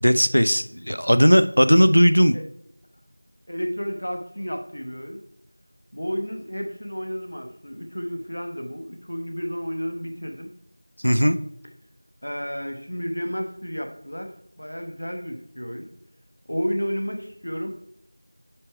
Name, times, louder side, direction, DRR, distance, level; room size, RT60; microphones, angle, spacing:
voice 1, 0.0-2.3 11.0-11.4, equal, 85° left, 11 dB, 0.4 m, -17 dB
voice 2, 3.5-5.2 5.9-10.5 12.2-15.9 16.5-17.8, equal, 60° left, 4 dB, 1.0 m, -31 dB
5.8 x 4.7 x 4.6 m, 0.72 s
figure-of-eight pair, 180°, 0 cm